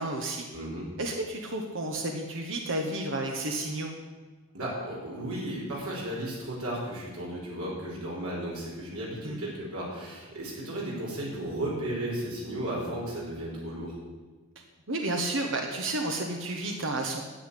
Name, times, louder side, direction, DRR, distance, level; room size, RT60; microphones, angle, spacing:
voice 1, 0.0-0.4 1.0-3.9 9.2-9.4 14.9-17.2, right 2 dB, 60° right, 2 dB, 1.3 m, -31 dB
voice 2, 0.5-0.9 4.5-14.0, right 1 dB, 80° right, -5 dB, 4.8 m, -34 dB
10.0 x 8.1 x 9.8 m, 1.3 s
head